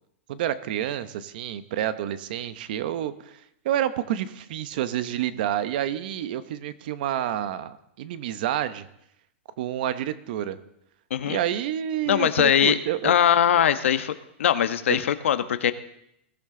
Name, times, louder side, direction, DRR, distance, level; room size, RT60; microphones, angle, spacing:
voice 1, 0.3-8.9 9.6-10.6 11.2-13.1, right 11 dB, 45° right, 13 dB, 0.9 m, -29 dB
voice 2, 12.1-12.8 13.0-15.7, left 9 dB, 80° left, 11 dB, 1.1 m, -21 dB
21.5 x 14.0 x 3.8 m, 0.77 s
supercardioid pair, 170°, 7 cm